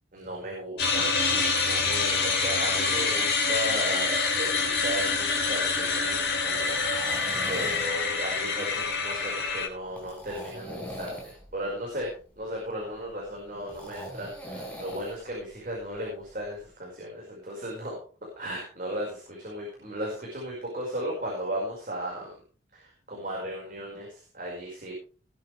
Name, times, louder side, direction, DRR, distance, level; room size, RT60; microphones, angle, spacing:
voice 1, 0.1-18.0 18.4-22.4 22.7-25.0, equal, 45° right, -3 dB, 5.3 m, -36 dB
sound 1, 0.8-9.7, left 4 dB, 60° left, 4.1 m, -26 dB
sound 2, 4.5-16.7, equal, 5° left, 4.6 m, -44 dB
20.5 x 9.0 x 3.4 m, 0.37 s
head